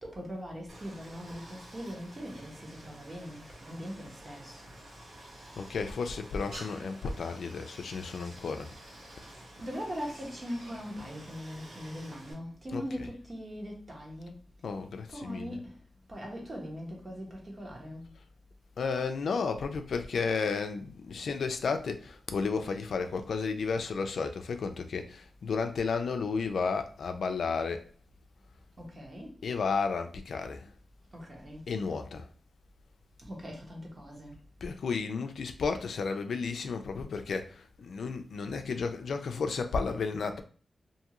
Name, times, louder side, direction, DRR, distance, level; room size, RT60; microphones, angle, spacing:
voice 1, 0.0-4.6 9.6-14.3 15.1-15.7 16.1-18.1 28.8-29.3 31.1-31.7 33.3-34.4, equal, 40° right, 1.1 m, -41 dB
Stream, 0.7-12.3, right 1 dB, 85° right, 1.2 m, -50 dB
voice 2, 5.6-8.7 12.7-13.1 14.6-15.6 18.8-27.9 29.4-30.7 31.7-32.3 34.6-40.4, left 5 dB, 85° left, 0.3 m, -33 dB
2.6 x 2.3 x 2.9 m
cardioid pair, 70°, 0 cm